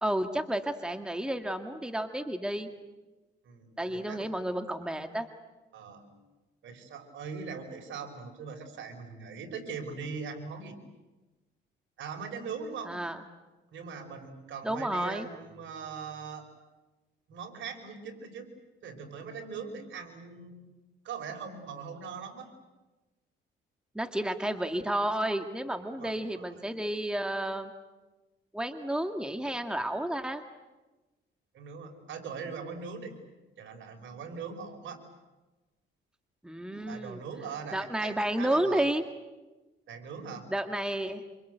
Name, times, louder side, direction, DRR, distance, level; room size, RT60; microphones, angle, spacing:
voice 1, 0.0-2.7 3.8-5.3 12.9-13.2 14.6-15.3 23.9-27.7 28.5-30.4 36.4-37.2 37.7-39.0 40.5-41.2, right 1 dB, 5° right, 6 dB, 2.0 m, -31 dB
voice 2, 3.5-4.3 5.7-6.3 6.6-10.8 12.0-12.9 13.7-16.4 17.3-18.5 18.8-20.6 21.0-22.5 26.0-26.7 31.5-33.1 33.6-35.0 36.9-38.9 39.9-40.5, right 5 dB, 75° right, 4 dB, 5.2 m, -41 dB
27.0 x 26.5 x 8.1 m, 1.2 s
cardioid pair, 90°, 20 cm